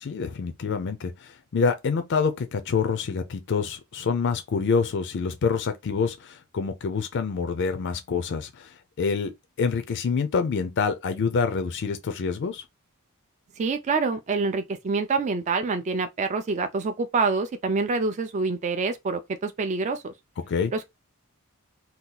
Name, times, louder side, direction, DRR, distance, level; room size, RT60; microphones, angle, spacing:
voice 1, 0.0-9.3 9.6-12.6 20.5-20.7, left 5 dB, 55° left, 0.4 m, -26 dB
voice 2, 13.6-20.1 20.7-20.8, right 4 dB, 35° right, 0.3 m, -26 dB
2.8 x 2.3 x 3.7 m
head